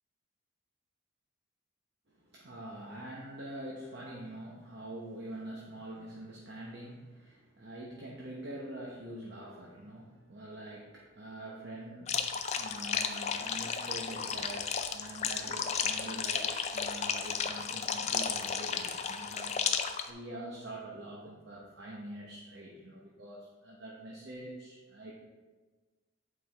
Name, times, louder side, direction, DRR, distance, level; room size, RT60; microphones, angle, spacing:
voice 1, 2.1-25.1, right 1 dB, 55° right, -4 dB, 0.8 m, -45 dB
sound 1, 12.1-20.1, left 6 dB, 30° left, 0.3 m, -33 dB
8.3 x 4.6 x 3.4 m, 1.3 s
head